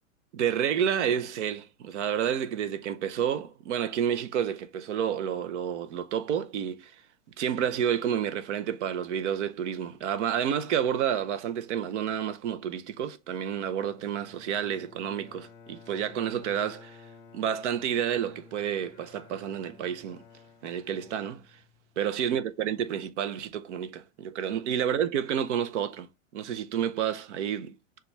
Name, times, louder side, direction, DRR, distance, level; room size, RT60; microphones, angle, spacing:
voice 1, 0.3-7.0 7.4-17.0 17.3-20.2 20.6-21.5 22.0-26.1 26.3-27.7, right 9 dB, 60° right, 0.7 m, -30 dB
Bowed string instrument, 13.6-22.0, left 6 dB, 35° left, 0.6 m, -53 dB
6.8 x 2.4 x 3.2 m
supercardioid pair, 165°, 41 cm